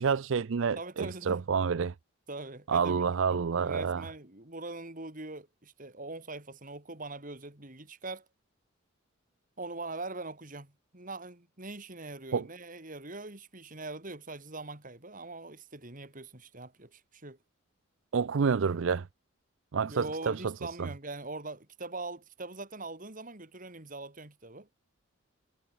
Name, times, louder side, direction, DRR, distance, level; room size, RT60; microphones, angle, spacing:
voice 1, 0.0-1.9 2.7-4.0 12.3-12.5 18.1-19.1 19.7-20.9, right 6 dB, 65° right, 0.5 m, -29 dB
voice 2, 0.8-1.4 2.3-3.0 3.3-8.3 9.6-17.4 19.9-24.7, right 2 dB, 40° right, 3.5 m, -42 dB
head